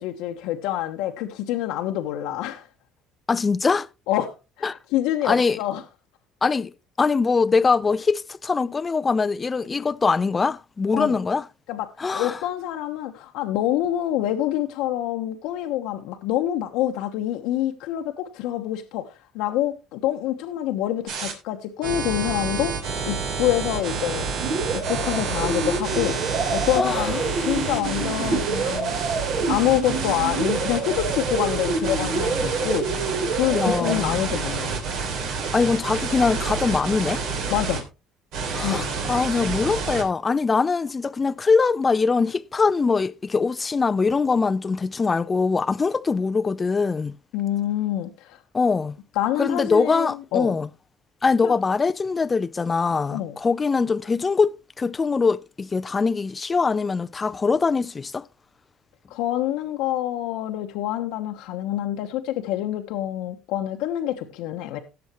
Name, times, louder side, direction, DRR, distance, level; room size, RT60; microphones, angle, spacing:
voice 1, 0.0-2.7 4.1-5.8 10.9-11.2 11.7-11.9 12.1-24.3 24.7-29.0 29.5-33.0 33.3-34.8 37.5-37.8 38.6-38.9 47.3-48.4 49.1-50.5 51.4-51.5 53.1-53.4 59.1-64.8, left 12 dB, 80° left, 1.1 m, -26 dB
voice 2, 3.3-3.9 4.6-4.8 5.2-5.6 6.4-11.4 12.0-12.4 26.8-27.1 33.5-34.2 35.5-37.2 38.5-47.2 48.5-49.0 49.4-50.7 51.2-58.3, left 4 dB, 25° left, 0.4 m, -22 dB
sound 1, 21.1-21.3 21.8-37.8 38.3-40.0, right 5 dB, 70° right, 3.2 m, -28 dB
sound 2, 24.4-33.9, right 4 dB, 55° right, 2.0 m, -28 dB
17.5 x 7.0 x 3.0 m
cardioid pair, 120°, 0 cm